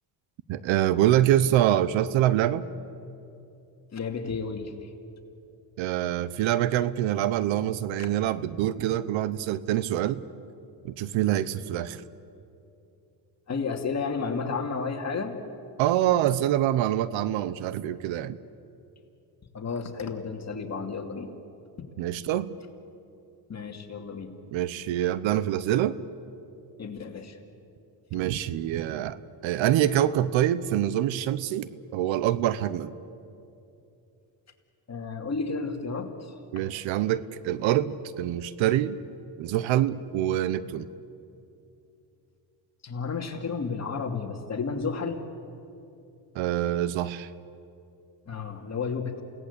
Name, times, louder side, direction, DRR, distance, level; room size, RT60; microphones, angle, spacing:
voice 1, 0.5-2.7 5.8-10.2 10.8-12.0 15.8-18.4 22.0-22.5 24.5-26.0 28.1-29.2 29.4-32.9 36.5-39.0 39.4-40.9 46.3-47.3, right 12 dB, 80° right, 16 dB, 1.0 m, -25 dB
voice 2, 3.9-4.9 13.5-15.4 19.5-21.3 23.5-24.3 26.8-27.4 34.9-36.1 36.6-36.7 42.8-45.2 48.3-49.2, left 5 dB, 35° left, 3 dB, 2.6 m, -32 dB
28.5 x 18.0 x 8.3 m, 2.7 s
cardioid pair, 100°, 45 cm